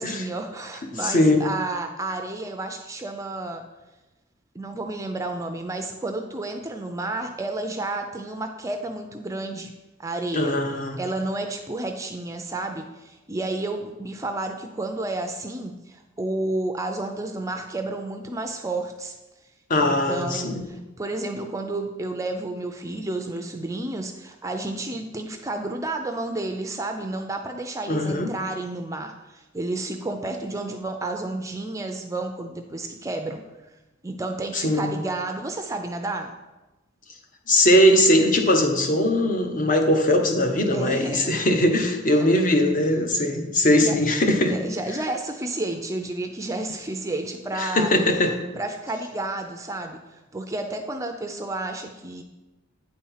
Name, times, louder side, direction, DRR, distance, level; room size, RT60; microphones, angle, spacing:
voice 1, 0.0-3.6 4.5-9.7 10.0-10.5 11.0-19.1 19.8-33.4 34.0-36.3 40.7-41.3 42.1-42.3 43.8-44.2 44.5-50.0 50.3-52.2, right 2 dB, 15° right, 5 dB, 0.4 m, -31 dB
voice 2, 1.0-1.4 10.3-11.0 19.7-20.6 27.9-28.3 34.5-35.0 37.5-44.5 47.6-48.3, left 1 dB, 40° left, 4 dB, 1.0 m, -20 dB
9.1 x 4.3 x 5.6 m, 1.1 s
head